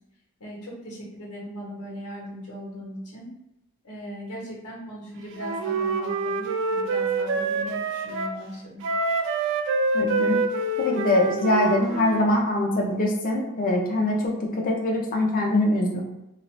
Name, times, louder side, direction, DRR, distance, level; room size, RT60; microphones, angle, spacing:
voice 1, 0.4-3.3 3.8-8.8, equal, 80° left, -3 dB, 1.0 m, -38 dB
Wind instrument woodwind instrument, 5.4-8.4 8.8-12.3, right 3 dB, 55° right, 0.3 m, -26 dB
voice 2, 9.9-10.5 10.8-16.0, left 1 dB, 40° left, 0 dB, 0.5 m, -23 dB
2.5 x 2.3 x 3.1 m, 0.92 s
head